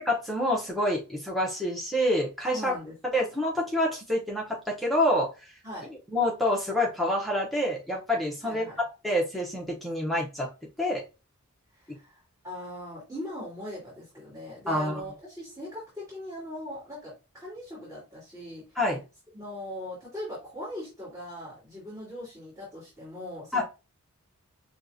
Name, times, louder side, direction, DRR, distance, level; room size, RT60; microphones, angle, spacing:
voice 1, 0.1-2.7 3.1-5.5 6.1-8.7 9.0-10.5 10.8-11.0 14.7-15.0 18.8-19.0 23.5-23.6, left 1 dB, ahead, -3 dB, 0.7 m, -27 dB
voice 2, 2.5-2.9 5.6-5.9 8.4-8.8 11.7-18.8 19.3-23.6, left 1 dB, 15° right, -8 dB, 2.5 m, -40 dB
6.3 x 2.4 x 2.6 m, 0.29 s
head